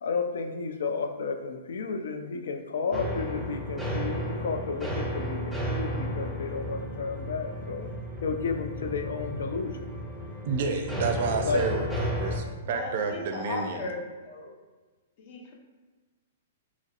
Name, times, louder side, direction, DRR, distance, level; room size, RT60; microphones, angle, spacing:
voice 1, 0.0-7.9 8.2-9.9 11.4-11.6, left 5 dB, 80° left, 6 dB, 0.3 m, -32 dB
sound 1, 2.9-12.4, equal, 5° right, 0.5 m, -33 dB
voice 2, 10.5-13.9, right 4 dB, 55° right, 5 dB, 0.4 m, -30 dB
voice 3, 12.7-14.5 15.2-15.5, left 2 dB, 45° left, 0 dB, 0.6 m, -37 dB
3.0 x 2.7 x 2.5 m, 1.3 s
hypercardioid pair, 145°, 0 cm